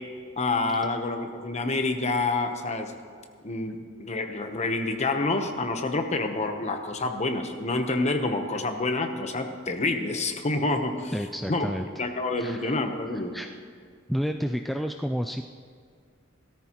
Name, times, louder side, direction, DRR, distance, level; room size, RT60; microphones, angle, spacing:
voice 1, 0.4-2.9 3.4-11.1 11.5-11.7 12.0-13.3, left 2 dB, 35° left, 5 dB, 1.0 m, -28 dB
voice 2, 11.1-12.0 12.4-12.8 13.1-13.5 14.1-15.4, equal, ahead, 5 dB, 0.3 m, -30 dB
17.5 x 13.5 x 3.0 m, 2.1 s
head